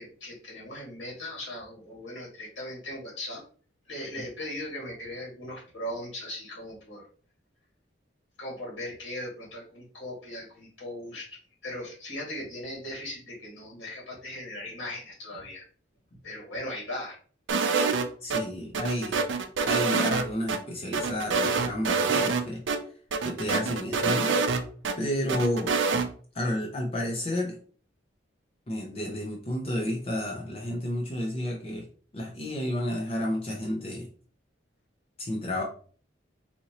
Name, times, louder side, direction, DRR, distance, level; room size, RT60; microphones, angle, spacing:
voice 1, 0.0-3.4 3.9-7.0 8.4-15.7 16.2-17.2, left 1 dB, 70° left, -4 dB, 1.8 m, -38 dB
sound 1, 17.5-18.4 18.7-20.6 20.9-22.4 22.7-22.8 23.1-24.9 25.3-26.1, right 4 dB, 75° right, 0.5 m, -26 dB
voice 2, 18.2-19.2 19.7-22.6 23.2-24.4 25.0-25.8 26.3-27.6 28.7-31.8 32.1-34.1 35.2-35.6, left 1 dB, 30° left, -1 dB, 0.6 m, -31 dB
4.2 x 2.8 x 2.8 m, 0.43 s
head